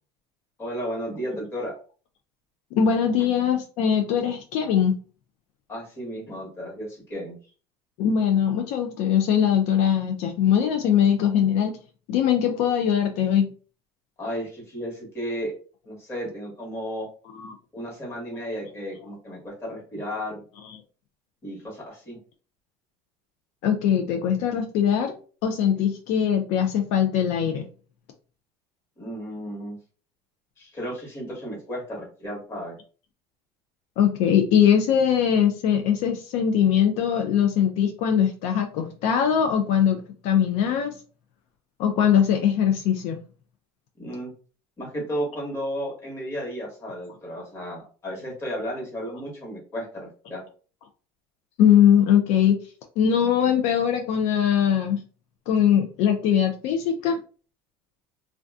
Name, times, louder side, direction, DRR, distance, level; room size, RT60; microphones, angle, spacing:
voice 1, 0.6-1.7 3.2-3.3 5.7-7.4 14.2-15.5 15.8-17.1 17.7-20.4 21.4-22.2 29.0-29.8 30.6-32.8 44.0-44.3 44.8-50.4, equal, 20° left, -3 dB, 1.1 m, -33 dB
voice 2, 2.7-5.0 8.0-11.7 12.1-13.5 17.4-17.5 20.6-20.8 23.6-25.2 25.4-27.7 34.0-40.9 41.8-43.2 51.6-52.6 53.0-55.0 55.5-57.2, left 8 dB, 65° left, 4 dB, 0.4 m, -21 dB
2.5 x 2.2 x 2.3 m, 0.38 s
cardioid pair, 145°, 12 cm